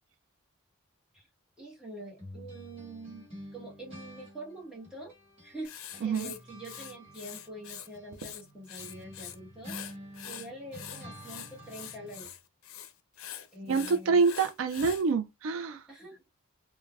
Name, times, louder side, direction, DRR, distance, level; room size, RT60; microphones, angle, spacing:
voice 1, 1.6-3.3 3.5-5.1 5.4-9.7 10.2-12.3 13.5-14.2 15.9-16.2, right 1 dB, 5° right, 1.1 m, -45 dB
sound 1, 2.2-5.6 5.9-12.3, equal, 25° right, 1.3 m, -49 dB
Writing, 5.6-7.9 8.1-9.4 9.6-15.0, left 10 dB, 80° left, 0.5 m, -44 dB
voice 2, 6.0-6.3 13.7-15.8, right 4 dB, 70° right, 0.4 m, -26 dB
3.2 x 2.1 x 2.3 m
head